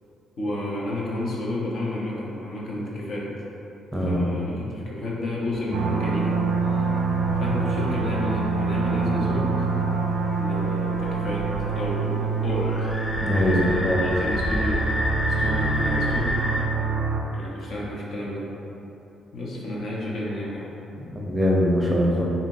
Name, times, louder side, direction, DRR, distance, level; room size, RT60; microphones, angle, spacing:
voice 1, 0.4-3.3 4.0-6.3 6.6-6.9 7.3-9.5 10.4-12.8 13.3-14.8 15.3-16.5 17.3-18.5 19.3-20.7, left 1 dB, 60° left, -5 dB, 0.9 m, -31 dB
voice 2, 3.9-4.3 13.2-14.0 21.3-22.2, equal, 5° right, -4 dB, 0.7 m, -22 dB
sound 1, 5.5-16.7, left 1 dB, 40° left, 0.5 m, -32 dB
sound 2, 5.7-17.2, right 4 dB, 75° right, 0.4 m, -26 dB
4.9 x 2.8 x 2.7 m, 2.9 s
cardioid pair, 90°, 0 cm